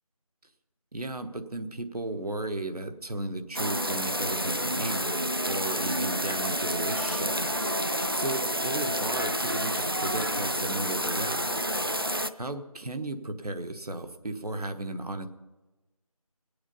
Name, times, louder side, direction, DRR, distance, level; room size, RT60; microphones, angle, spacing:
voice 1, 0.9-7.4 8.1-11.4 12.4-15.3, right 2 dB, 85° right, 7 dB, 1.3 m, -35 dB
sound 1, 3.5-12.3, equal, 40° right, 0.4 m, -29 dB
19.0 x 8.6 x 5.4 m, 1.2 s
figure-of-eight pair, 175°, 19 cm